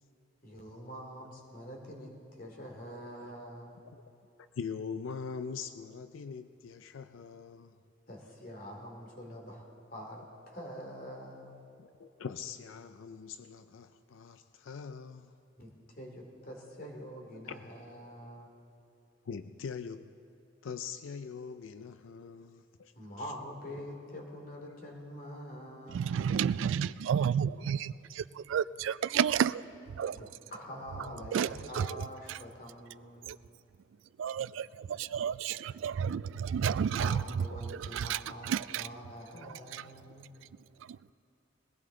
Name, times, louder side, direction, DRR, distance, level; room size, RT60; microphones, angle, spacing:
voice 1, 0.4-3.8 8.1-11.6 15.6-18.5 22.9-26.4 30.1-33.3 36.9-40.3, equal, 45° left, 0 dB, 2.5 m, -45 dB
voice 2, 4.6-7.8 11.8-15.3 17.3-17.6 19.3-20.2 20.6-22.9 24.7-24.8, left 6 dB, 85° left, 11 dB, 0.4 m, -42 dB
voice 3, 25.9-29.6 29.9-30.2 31.3-32.0 32.3-32.4 33.2-33.4 34.2-38.9 39.4-39.8 40.8-41.0, right 8 dB, 75° right, 17 dB, 0.3 m, -31 dB
20.5 x 17.0 x 3.8 m, 2.5 s
head